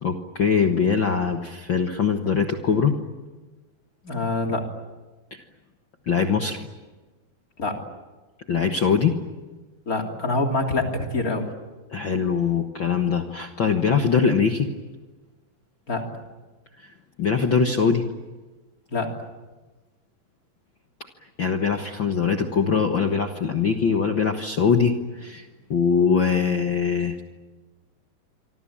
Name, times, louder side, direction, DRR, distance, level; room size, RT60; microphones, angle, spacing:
voice 1, 0.0-3.0 5.3-5.4 6.1-6.6 8.5-9.2 11.9-14.7 17.2-18.0 21.4-27.2, left 6 dB, 70° left, 5 dB, 1.1 m, -22 dB
voice 2, 4.0-4.6 7.6-7.7 9.9-11.5 15.9-16.0 18.9-19.1, left 2 dB, 25° left, 2 dB, 3.2 m, -25 dB
26.5 x 24.5 x 8.8 m, 1.2 s
omnidirectional pair, 4.3 m